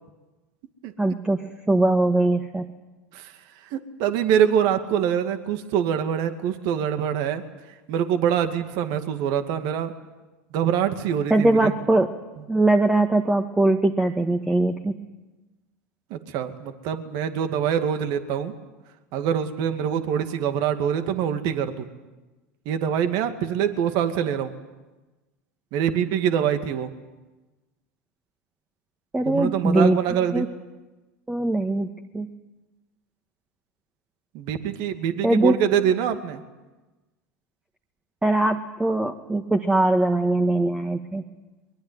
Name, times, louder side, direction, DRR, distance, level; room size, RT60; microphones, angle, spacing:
voice 1, 1.0-2.7 11.3-12.1 12.5-14.9 29.1-30.0 30.3-30.5 31.3-31.9 32.1-32.3 35.2-35.6 38.2-41.2, right 2 dB, 10° right, 5 dB, 1.7 m, -21 dB
voice 2, 3.7-7.4 7.9-9.9 10.5-11.7 16.1-18.5 19.1-21.9 22.7-24.5 25.7-26.9 29.3-30.5 34.3-36.4, right 9 dB, 60° right, 8 dB, 2.3 m, -24 dB
23.0 x 22.5 x 9.5 m, 1.1 s
hypercardioid pair, 90°, 8 cm